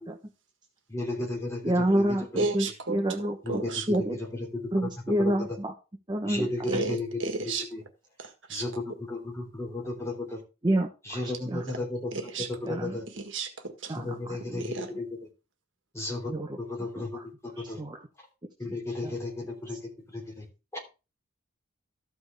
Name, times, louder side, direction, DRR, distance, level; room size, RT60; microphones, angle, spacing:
voice 1, 0.9-2.5 3.4-3.7 4.1-4.5 4.8-4.9 5.2-5.5 6.2-7.1 7.7-7.8 8.5-10.4 11.1-12.3 12.6-13.0 14.0-15.0 15.9-16.3 16.6-17.1 17.4-17.8 18.6-19.8 20.1-20.4 20.7-20.8, left 2 dB, 15° left, -2 dB, 3.2 m, -34 dB
voice 2, 1.6-3.6 3.9-4.2 4.7-5.7 6.1-6.8 10.6-11.6 12.6-13.0 13.9-14.6 16.3-16.6 17.0-17.2 17.8-18.0 19.0-19.1, right 1 dB, 25° right, 3 dB, 1.0 m, -28 dB
voice 3, 2.4-3.0 3.5-3.9 6.7-7.7 8.2-8.6 12.1-12.5 13.1-13.9 14.4-14.9, right 3 dB, 70° right, 6 dB, 1.6 m, -33 dB
13.5 x 6.1 x 3.4 m, 0.30 s
head